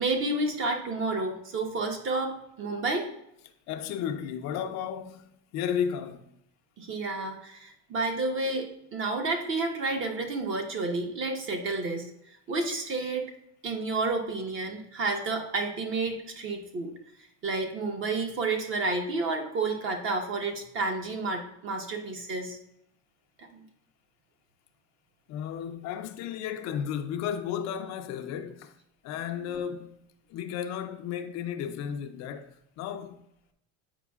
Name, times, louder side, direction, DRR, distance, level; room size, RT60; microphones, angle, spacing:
voice 1, 0.0-3.1 6.8-12.1 12.5-13.3 13.6-16.9 17.4-22.6 23.5-23.6 29.4-29.5, right 3 dB, 40° right, 1.1 m, -30 dB
voice 2, 3.7-6.3 25.3-28.7 29.0-30.0 30.3-33.2, left 8 dB, 55° left, 0.5 m, -34 dB
8.0 x 5.2 x 2.3 m
cardioid pair, 145°, 32 cm